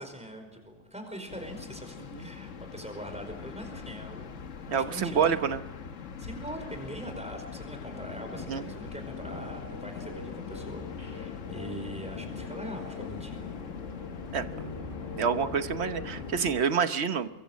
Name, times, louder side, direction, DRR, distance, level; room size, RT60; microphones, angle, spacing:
voice 1, 0.0-5.6 6.2-13.4, right 1 dB, 5° right, 5 dB, 4.9 m, -42 dB
sound 1, 1.3-16.6, left 6 dB, 80° left, 1.5 m, -41 dB
voice 2, 4.7-5.6 8.5-8.6 14.3-14.4 15.2-17.3, right 7 dB, 60° right, 10 dB, 1.3 m, -27 dB
sound 2, 6.2-16.4, left 3 dB, 45° left, 8.1 m, -44 dB
25.0 x 22.5 x 6.3 m, 1.1 s
omnidirectional pair, 1.3 m